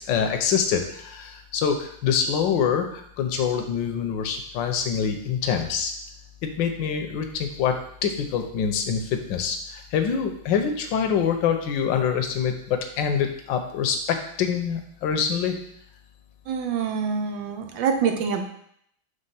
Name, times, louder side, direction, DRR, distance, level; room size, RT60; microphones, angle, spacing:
voice 1, 0.1-5.9 6.4-15.6, left 7 dB, 75° left, 6 dB, 1.4 m, -25 dB
voice 2, 16.5-18.4, right 6 dB, 85° right, 5 dB, 1.5 m, -25 dB
5.5 x 3.3 x 5.6 m, 0.69 s
omnidirectional pair, 2.1 m